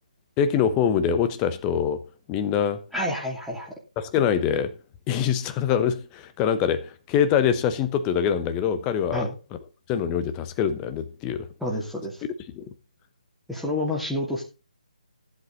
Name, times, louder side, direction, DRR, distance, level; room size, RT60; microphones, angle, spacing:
voice 1, 0.4-2.0 2.3-2.8 4.0-4.8 5.1-9.3 9.9-11.5 12.6-12.7, left 8 dB, 15° left, 1.0 m, -24 dB
voice 2, 2.9-3.7 9.1-9.3 11.6-12.2 13.5-14.4, left 1 dB, ahead, 2.8 m, -29 dB
14.5 x 8.1 x 3.9 m
figure-of-eight pair, 150°, 4 cm